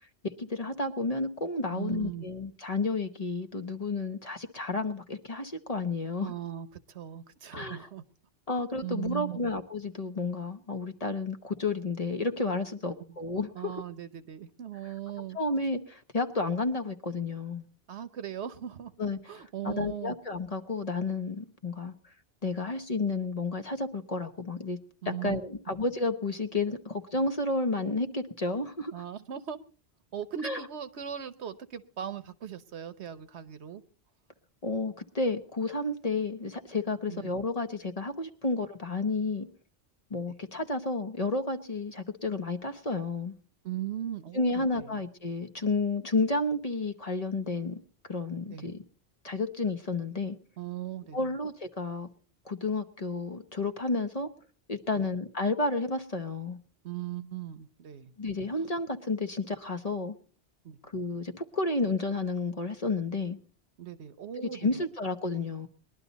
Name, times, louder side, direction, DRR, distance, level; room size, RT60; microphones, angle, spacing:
voice 1, 0.4-6.3 7.5-7.9 8.5-13.7 15.3-17.6 19.0-19.2 19.6-21.9 22.4-24.8 25.0-28.9 30.4-30.6 34.6-39.5 40.1-43.3 44.3-47.8 48.1-48.8 49.2-50.4 51.1-52.1 52.5-54.3 54.7-56.6 58.2-60.1 60.8-63.4 64.4-65.7, left 3 dB, 35° left, 7 dB, 1.0 m, -31 dB
voice 2, 1.7-2.3 6.2-8.0 8.8-9.5 12.8-13.2 13.5-15.4 17.9-18.9 19.3-20.2 25.0-25.4 28.9-29.6 30.1-33.8 37.1-37.3 40.3-40.4 43.6-45.0 48.5-48.7 50.6-51.3 54.9-55.1 56.8-58.1 58.6-58.7 60.6-60.8 63.8-64.8, right 10 dB, 85° right, 13 dB, 1.2 m, -39 dB
21.0 x 11.5 x 4.1 m, 0.39 s
omnidirectional pair, 1.1 m